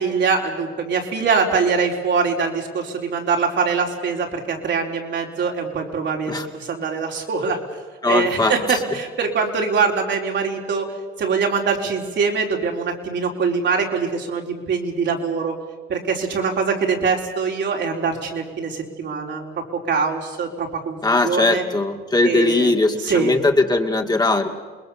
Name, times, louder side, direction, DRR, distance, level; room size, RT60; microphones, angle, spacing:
voice 1, 0.0-7.6 8.0-10.9 11.2-15.6 15.9-21.6 22.2-22.7 23.0-23.3, right 5 dB, 65° right, 1 dB, 4.2 m, -23 dB
voice 2, 8.0-8.8 21.0-24.5, left 2 dB, 20° left, 3 dB, 2.2 m, -19 dB
28.0 x 21.0 x 7.1 m, 1.4 s
cardioid pair, 90°, 20 cm